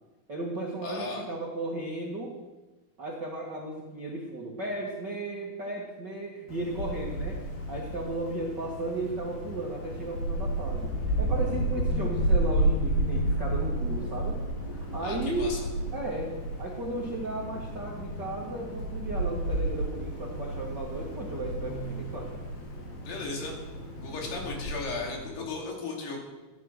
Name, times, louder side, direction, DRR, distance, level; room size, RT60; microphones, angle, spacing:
voice 1, 0.3-2.4 3.0-7.4 7.7-14.4 14.7-15.6 15.9-16.3 16.6-22.4 24.2-24.5, right 2 dB, 60° right, -2 dB, 1.1 m, -35 dB
voice 2, 0.8-1.2 15.0-15.6 23.0-23.6 24.0-26.2, left 3 dB, 75° left, -1 dB, 4.7 m, -36 dB
Wind, 6.5-25.1, right 1 dB, 60° left, 4.2 m, -32 dB
sound 1, 9.6-25.6, equal, 25° left, 4.3 m, -45 dB
15.0 x 10.5 x 6.5 m, 1.2 s
omnidirectional pair, 4.9 m